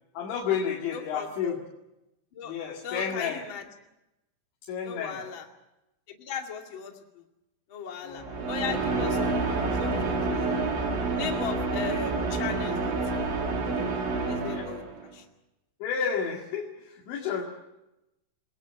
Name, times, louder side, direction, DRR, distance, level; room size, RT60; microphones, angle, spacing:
voice 1, 0.2-1.6 2.4-3.4 4.7-5.2 8.0-8.5 14.2-14.7 15.8-17.4, left 7 dB, 80° left, -1 dB, 4.5 m, -31 dB
voice 2, 0.9-1.6 2.3-2.5 2.8-3.7 4.8-5.5 6.1-7.2 7.7-10.6 11.1-13.4 14.3-14.8 15.1-15.2, left 6 dB, 35° left, 2 dB, 2.3 m, -37 dB
sound 1, 8.2-15.1, right 3 dB, 80° right, 5.9 m, -28 dB
29.5 x 19.5 x 6.4 m, 0.92 s
omnidirectional pair, 5.3 m